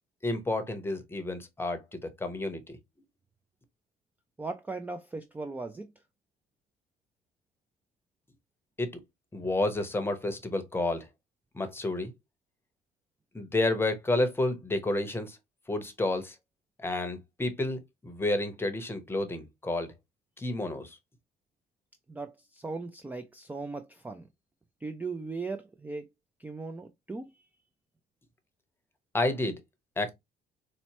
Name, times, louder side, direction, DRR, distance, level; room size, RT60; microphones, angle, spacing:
voice 1, 0.2-2.8 8.8-8.9 9.3-11.1 11.5-12.1 13.3-15.4 15.7-16.4 16.8-19.9 20.4-21.0 29.1-29.6 30.0-30.1, left 2 dB, 15° left, 0.8 m, -30 dB
voice 2, 4.4-5.9 22.1-24.3 24.8-26.1 26.4-27.5, right 3 dB, 10° right, 0.3 m, -38 dB
4.2 x 2.1 x 2.9 m
cardioid pair, 110°, 17 cm